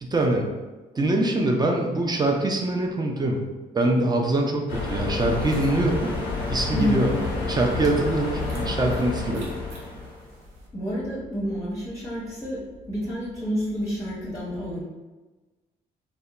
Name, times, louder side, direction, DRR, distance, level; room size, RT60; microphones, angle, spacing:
voice 1, 0.0-0.5 1.0-3.4 3.7-6.1 6.5-9.5, right 2 dB, 20° right, 1 dB, 0.4 m, -24 dB
sound 1, 4.7-10.3, left 3 dB, 90° left, 0.5 m, -29 dB
sound 2, 5.0-10.7, right 1 dB, 85° right, 0.5 m, -45 dB
voice 2, 6.7-7.0 10.7-12.6 12.9-14.8, equal, 15° left, -7 dB, 0.7 m, -28 dB
2.7 x 2.1 x 2.3 m, 1.2 s
supercardioid pair, 60°, 19 cm